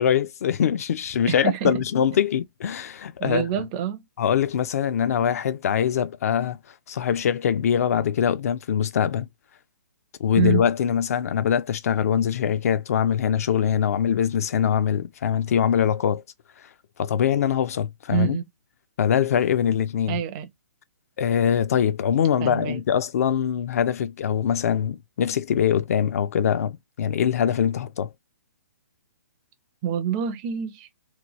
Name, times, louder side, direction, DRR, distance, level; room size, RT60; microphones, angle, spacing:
voice 1, 0.0-3.7 4.2-6.6 6.9-9.3 10.2-16.2 17.0-18.4 19.0-20.2 21.2-28.1, left 8 dB, 55° left, 0.3 m, -23 dB
voice 2, 1.3-1.8 3.2-4.1 10.4-10.6 18.1-18.4 20.1-20.5 22.4-22.8 29.8-30.9, right 9 dB, 25° right, 0.4 m, -26 dB
2.9 x 2.2 x 2.9 m
hypercardioid pair, 155°, 10 cm